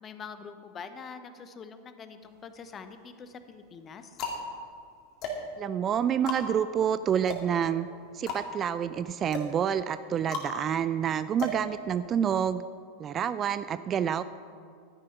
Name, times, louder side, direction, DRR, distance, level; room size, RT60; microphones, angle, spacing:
voice 1, 0.0-4.2, left 5 dB, 25° left, 9 dB, 1.0 m, -44 dB
sound 1, 2.2-3.0 3.6-12.4, left 2 dB, 45° left, 2.2 m, -38 dB
voice 2, 5.6-7.9 8.1-12.6 13.0-14.2, right 8 dB, 30° right, 14 dB, 0.4 m, -28 dB
12.0 x 10.0 x 5.7 m, 2.3 s
figure-of-eight pair, 85°, 0 cm